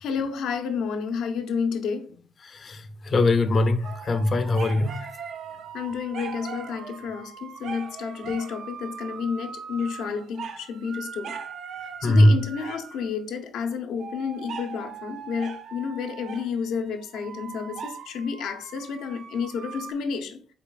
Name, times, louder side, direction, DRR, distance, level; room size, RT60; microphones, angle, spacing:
voice 1, 0.0-2.2 5.7-11.4 11.8-20.4, left 6 dB, 80° left, 0.7 m, -31 dB
voice 2, 2.4-5.1 12.0-12.4, left 1 dB, 45° left, 0.5 m, -21 dB
sound 1, 3.8-13.1 14.0-19.9, right 6 dB, 65° right, 0.5 m, -40 dB
5.6 x 4.0 x 2.2 m
cardioid pair, 90°, 0 cm